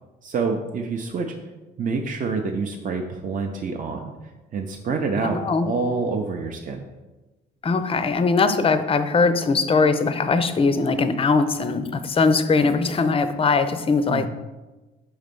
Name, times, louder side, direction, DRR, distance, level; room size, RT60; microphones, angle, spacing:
voice 1, 0.2-1.3 1.8-4.1 4.5-6.8 14.1-14.3, right 4 dB, 40° right, 2 dB, 0.6 m, -27 dB
voice 2, 5.2-5.7 7.6-14.3, left 4 dB, 30° left, 10 dB, 0.5 m, -21 dB
5.8 x 3.2 x 5.2 m, 1.1 s
cardioid pair, 90°, 20 cm